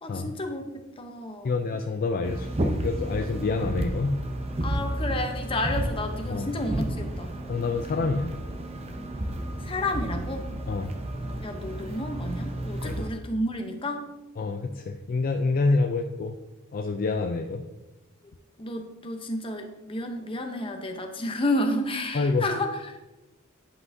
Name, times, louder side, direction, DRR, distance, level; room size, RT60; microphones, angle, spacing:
voice 1, 0.0-1.5 4.6-7.3 9.6-10.5 11.4-14.0 18.6-23.1, left 1 dB, 25° left, 4 dB, 0.8 m, -31 dB
voice 2, 1.4-4.2 6.3-6.5 7.5-8.3 10.7-10.9 12.8-13.0 14.4-16.4 16.7-17.6 22.1-22.5, left 3 dB, 45° left, 5 dB, 0.4 m, -27 dB
sound 1, 2.2-13.1, right 1 dB, 30° right, 0.7 m, -32 dB
10.5 x 5.6 x 2.7 m, 1.0 s
head